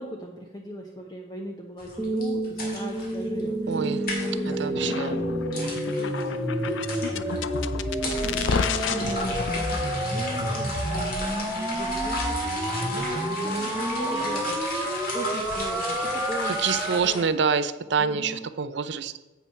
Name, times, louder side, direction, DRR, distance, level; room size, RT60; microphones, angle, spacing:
voice 1, 0.0-3.9 4.2-16.7 17.0-17.2 18.0-18.5, equal, 20° left, 0 dB, 0.8 m, -39 dB
sound 1, 1.8-17.2, left 2 dB, 50° left, 2.0 m, -35 dB
sound 2, 2.0-17.0, right 1 dB, 5° right, 0.8 m, -29 dB
voice 2, 3.7-4.1 4.5-5.1 16.5-19.2, right 5 dB, 60° right, 13 dB, 0.5 m, -26 dB
sound 3, 4.7-11.2, left 5 dB, 75° left, 0.5 m, -32 dB
8.2 x 5.9 x 5.7 m, 1.2 s
head